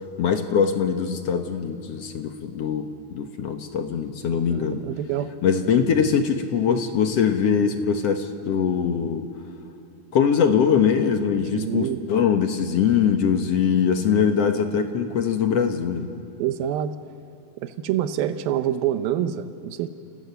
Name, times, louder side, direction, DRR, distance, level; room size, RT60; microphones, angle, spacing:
voice 1, 0.2-4.8 5.4-9.3 10.1-16.1, left 7 dB, 60° left, 6 dB, 1.8 m, -22 dB
voice 2, 4.5-5.3 11.5-12.0 16.4-17.0 17.6-19.9, right 11 dB, 85° right, 10 dB, 2.7 m, -26 dB
29.0 x 28.5 x 6.9 m, 2.5 s
omnidirectional pair, 4.2 m